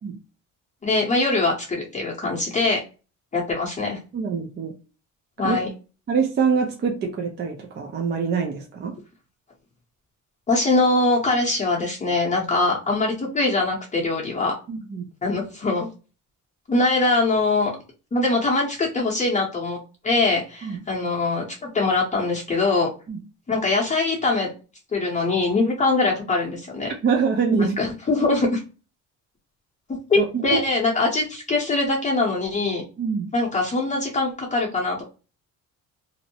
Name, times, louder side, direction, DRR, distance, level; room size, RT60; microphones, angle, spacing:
voice 1, 0.8-2.8 3.3-4.0 5.4-5.7 10.5-14.5 15.2-15.9 16.7-17.7 18.1-19.8 20.0-22.9 23.5-24.5 24.9-26.9 27.6-28.6 29.9-32.8 33.3-35.0, left 3 dB, 25° left, 0.8 m, -22 dB
voice 2, 4.1-4.7 5.4-5.6 6.1-9.0 14.7-15.1 20.6-20.8 23.1-23.2 27.0-27.8 30.2-30.6 33.0-33.3, right 5 dB, 35° right, 0.5 m, -24 dB
2.6 x 2.0 x 2.6 m
cardioid pair, 120°, 32 cm